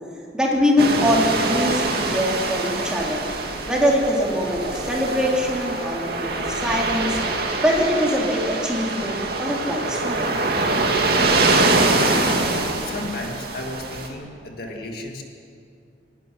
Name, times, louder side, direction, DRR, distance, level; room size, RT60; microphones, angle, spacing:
voice 1, 0.3-3.3 3.7-7.2 7.6-10.3, equal, 5° right, -3 dB, 3.7 m, -23 dB
sound 1, 0.8-14.1, right 2 dB, 55° right, 2.5 m, -24 dB
voice 2, 12.2-15.2, left 1 dB, 55° left, 1 dB, 2.1 m, -34 dB
24.5 x 12.0 x 9.9 m, 2.5 s
head